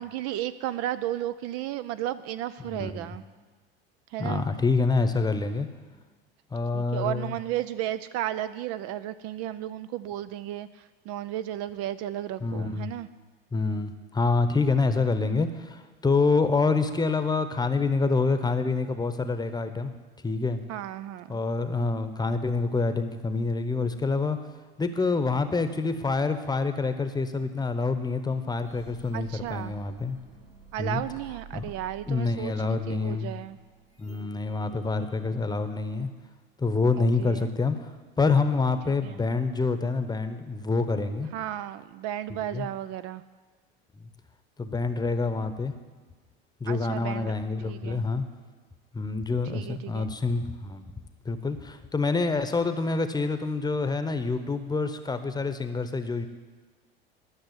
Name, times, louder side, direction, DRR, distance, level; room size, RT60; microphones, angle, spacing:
voice 1, 0.0-3.2 4.1-4.4 6.7-13.1 20.7-21.4 29.1-29.7 30.7-33.6 37.0-37.5 39.0-39.2 41.3-43.2 46.7-47.3 47.7-48.1 49.5-50.1, right 12 dB, 50° right, 13 dB, 0.5 m, -34 dB
voice 2, 2.8-3.1 4.2-5.7 6.5-7.4 12.4-12.9 13.5-19.9 20.2-20.6 21.3-24.4 24.8-30.2 30.8-31.0 31.5-31.6 32.1-33.3 34.0-36.1 36.6-37.9 38.2-41.3 42.3-42.7 44.6-45.7 46.6-48.2 48.9-50.8 51.2-56.3, left 3 dB, 15° left, 9 dB, 0.9 m, -27 dB
sound 1, 28.6-35.2, right 5 dB, 85° right, 2.7 m, -51 dB
12.0 x 6.2 x 8.1 m, 1.4 s
hypercardioid pair, 90°, 30 cm